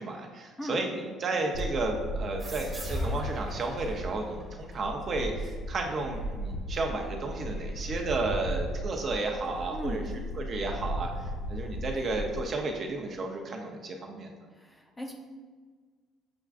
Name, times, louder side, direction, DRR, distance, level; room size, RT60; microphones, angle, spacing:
voice 1, 0.0-10.0 10.4-14.3, right 3 dB, 45° right, 2 dB, 0.5 m, -33 dB
sound 1, 1.5-4.4 4.7-12.4, equal, 70° left, 0.5 m, -36 dB
sound 2, 2.4-5.6, left 1 dB, 15° right, 1.0 m, -38 dB
voice 2, 9.7-10.1 14.5-15.1, equal, 15° left, 0 dB, 0.6 m, -37 dB
6.8 x 2.4 x 2.4 m, 1.5 s
cardioid pair, 115°, 0 cm